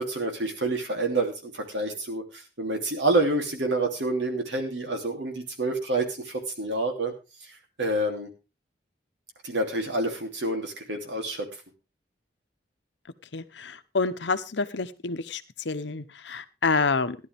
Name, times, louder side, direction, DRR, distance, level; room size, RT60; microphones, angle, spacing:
voice 1, 0.0-7.1 7.8-8.3 9.4-11.5, right 2 dB, 85° right, 4 dB, 3.0 m, -28 dB
voice 2, 13.3-17.2, left 4 dB, 80° left, 12 dB, 0.9 m, -28 dB
15.5 x 11.0 x 3.5 m, 0.29 s
head